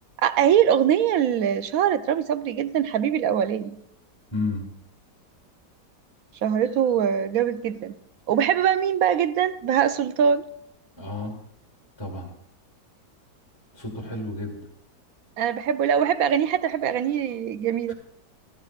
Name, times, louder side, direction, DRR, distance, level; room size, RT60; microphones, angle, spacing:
voice 1, 0.2-3.8 6.4-8.0 8.3-10.4 15.4-17.9, right 9 dB, 70° right, 0.9 m, -22 dB
voice 2, 4.3-4.7 11.0-11.3 12.0-12.3 13.7-14.6 17.9-18.0, left 2 dB, 15° left, 1.5 m, -31 dB
14.5 x 14.5 x 2.4 m
omnidirectional pair, 1.9 m